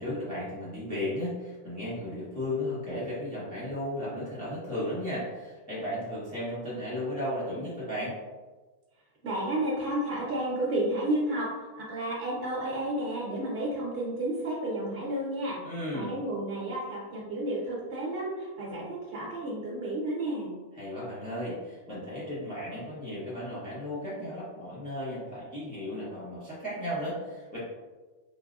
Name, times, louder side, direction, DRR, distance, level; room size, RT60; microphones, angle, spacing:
voice 1, 0.0-8.2 15.6-16.1 20.7-27.6, left 1 dB, 10° left, -9 dB, 0.6 m, -35 dB
voice 2, 9.2-11.5 11.8-15.6 15.9-20.5, right 1 dB, 60° right, -5 dB, 1.0 m, -31 dB
3.3 x 2.2 x 2.3 m, 1.3 s
omnidirectional pair, 1.2 m